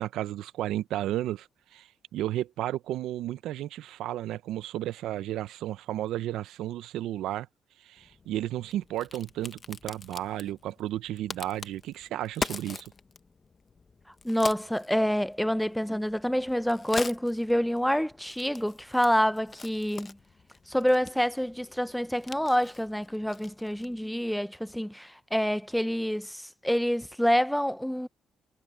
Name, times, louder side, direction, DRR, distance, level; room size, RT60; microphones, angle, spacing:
voice 1, 0.0-7.5 7.8-12.9, right 13 dB, 85° right, 0.5 m, -33 dB
Crack, 8.0-24.1, left 4 dB, 35° left, 1.1 m, -43 dB
voice 2, 14.2-20.2 20.7-28.1, equal, ahead, 0.6 m, -27 dB
cardioid pair, 90°, 0 cm